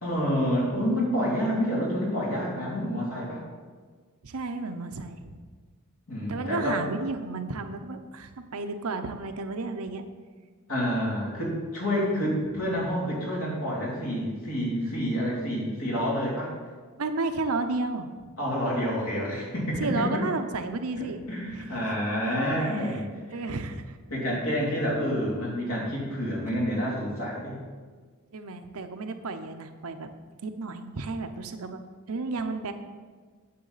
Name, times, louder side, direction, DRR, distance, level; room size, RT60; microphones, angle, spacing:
voice 1, 0.0-3.4 6.1-6.8 10.7-16.5 18.4-20.1 21.3-23.1 24.1-27.6, equal, 70° left, -5 dB, 2.9 m, -28 dB
voice 2, 4.2-5.4 6.3-10.1 12.0-12.3 17.0-18.1 19.8-21.3 21.5-21.9 22.6-24.0 28.3-30.1 30.4-31.8 32.1-32.7, right 3 dB, 80° right, 8 dB, 0.7 m, -32 dB
9.4 x 7.1 x 4.0 m, 1.5 s
head